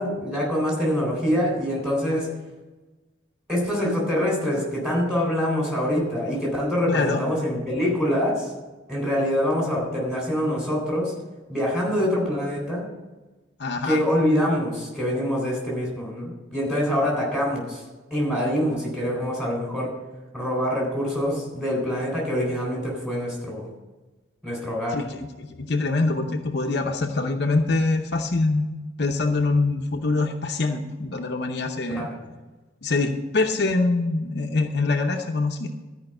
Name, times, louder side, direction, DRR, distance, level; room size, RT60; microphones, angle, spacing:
voice 1, 0.0-2.3 3.5-8.5 8.9-11.1 11.5-12.9 13.8-17.8 18.1-20.0 20.3-23.7 24.4-25.0 31.9-32.2, equal, 5° right, -3 dB, 3.7 m, -25 dB
voice 2, 6.9-7.2 13.6-14.0 24.9-28.7 29.0-32.1 32.8-35.7, left 3 dB, 55° left, 3 dB, 0.8 m, -24 dB
13.0 x 5.2 x 7.8 m, 1.2 s
head